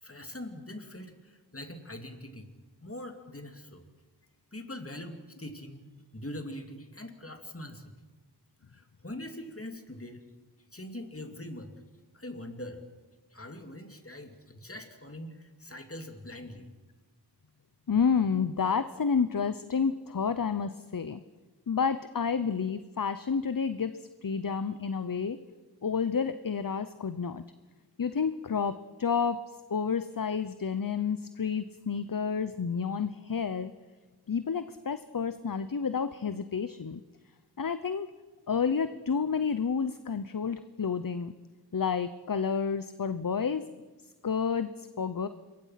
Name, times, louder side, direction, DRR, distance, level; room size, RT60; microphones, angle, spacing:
voice 1, 0.0-2.5 2.8-3.8 4.5-5.9 6.1-7.8 8.7-10.2 10.7-11.7 12.1-12.8 13.3-16.7, left 1 dB, 35° left, 6 dB, 2.7 m, -42 dB
voice 2, 17.9-21.2 21.7-25.4 25.8-27.4 28.0-29.4 29.7-33.7 34.3-37.0 37.6-38.1 38.5-41.3 41.7-43.7 44.2-45.3, left 6 dB, 55° left, 12 dB, 0.8 m, -30 dB
27.0 x 22.5 x 5.8 m, 1.3 s
wide cardioid pair, 55°, 40 cm